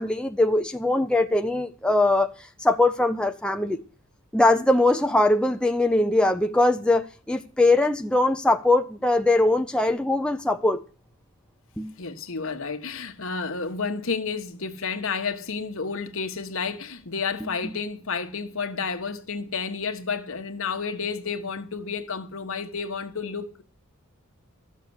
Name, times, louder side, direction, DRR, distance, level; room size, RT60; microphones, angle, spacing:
voice 1, 0.0-2.3 2.6-3.8 4.3-10.8 11.8-11.9 17.6-17.7, left 2 dB, 5° left, 0.6 m, -21 dB
voice 2, 12.0-23.6, left 5 dB, 65° left, 1.3 m, -31 dB
13.5 x 6.7 x 8.0 m
head